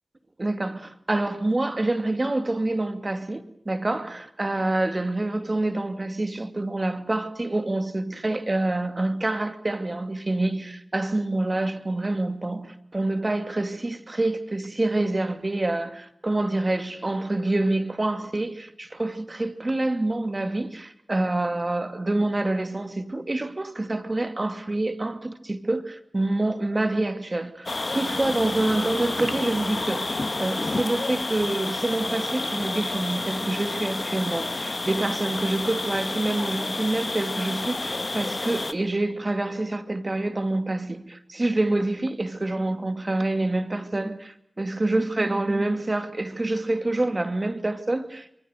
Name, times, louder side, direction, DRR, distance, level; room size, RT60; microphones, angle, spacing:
voice 1, 0.4-48.4, right 2 dB, 40° right, 2.6 m, -27 dB
sound 1, 27.7-38.7, left 2 dB, 55° left, 1.5 m, -30 dB
26.5 x 23.5 x 6.7 m
cardioid pair, 40°, 0 cm